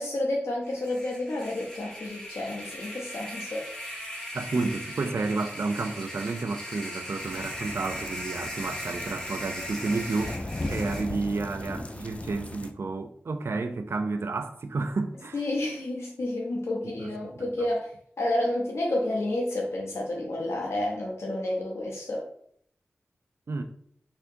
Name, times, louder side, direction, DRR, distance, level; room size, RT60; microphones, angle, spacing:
voice 1, 0.0-3.7 15.3-22.3, left 1 dB, 85° left, 0.6 m, -30 dB
sound 1, 0.6-11.1, equal, 15° left, 1.5 m, -39 dB
voice 2, 4.3-15.4 16.8-17.5 23.5-23.6, right 3 dB, 65° right, 0.3 m, -31 dB
sound 2, 7.2-12.7, left 2 dB, 30° left, 0.3 m, -38 dB
4.1 x 2.8 x 2.7 m
wide cardioid pair, 75°, 4 cm